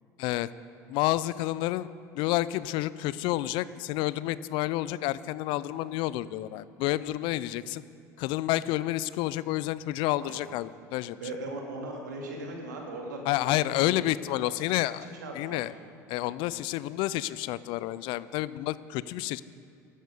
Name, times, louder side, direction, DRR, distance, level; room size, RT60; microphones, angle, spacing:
voice 1, 0.9-1.9 2.1-7.8 8.2-11.2 13.3-15.7 16.1-19.4, left 15 dB, 60° left, 17 dB, 0.4 m, -29 dB
voice 2, 11.2-14.4 14.7-14.8 15.0-15.7, right 2 dB, 85° right, 0 dB, 2.4 m, -39 dB
15.5 x 12.0 x 5.0 m, 2.4 s
hypercardioid pair, 75°, 9 cm